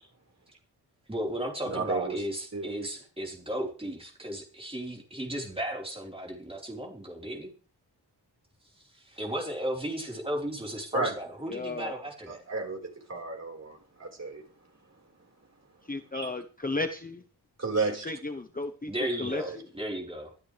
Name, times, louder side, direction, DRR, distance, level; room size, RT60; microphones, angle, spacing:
voice 1, 1.1-7.5 8.9-12.4 18.9-20.3, equal, 15° right, 4.3 m, -35 dB
voice 2, 1.6-2.2 2.5-2.7 10.9-11.1 12.3-14.5 16.1-16.3 17.6-18.1 19.0-19.6, right 3 dB, 35° right, 4.7 m, -33 dB
voice 3, 11.5-12.0 15.9-17.2 18.1-18.9 19.2-19.6, left 2 dB, 20° left, 1.0 m, -34 dB
22.5 x 13.0 x 3.4 m
wide cardioid pair, 160°, 43 cm